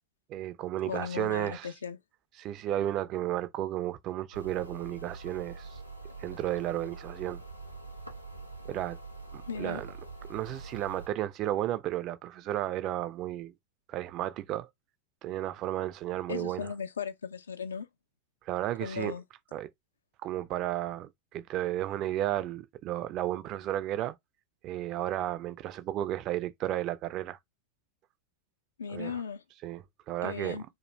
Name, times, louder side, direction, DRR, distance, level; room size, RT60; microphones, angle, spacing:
voice 1, 0.3-1.7 2.4-5.8 6.2-7.4 8.7-9.0 9.3-9.9 10.3-13.5 13.9-14.7 15.2-16.7 18.4-19.1 19.5-19.7 20.2-24.2 24.6-27.4 28.9-29.2 29.6-30.6, right 13 dB, 35° right, 0.3 m, -33 dB
voice 2, 0.9-2.0 9.5-9.8 16.3-17.9 18.8-19.2 28.8-29.4 30.2-30.6, left 6 dB, 70° left, 0.4 m, -37 dB
sound 1, 4.3-11.1, right 3 dB, 85° right, 0.6 m, -44 dB
2.3 x 2.1 x 3.1 m
figure-of-eight pair, 90°, 0 cm